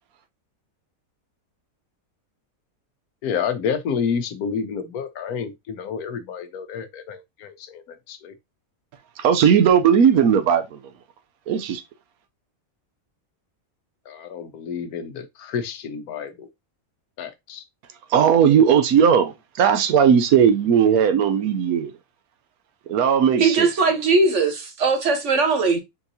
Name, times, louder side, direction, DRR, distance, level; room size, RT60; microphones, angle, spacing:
voice 1, 3.2-8.3 14.1-16.5 17.2-17.6, left 6 dB, 85° left, 1.2 m, -29 dB
voice 2, 9.2-10.8 11.5-11.8 18.1-21.9 22.9-23.7, right 8 dB, 80° right, 1.1 m, -17 dB
voice 3, 23.4-25.8, right 4 dB, 55° right, 1.3 m, -19 dB
4.4 x 3.9 x 2.7 m
omnidirectional pair, 1.5 m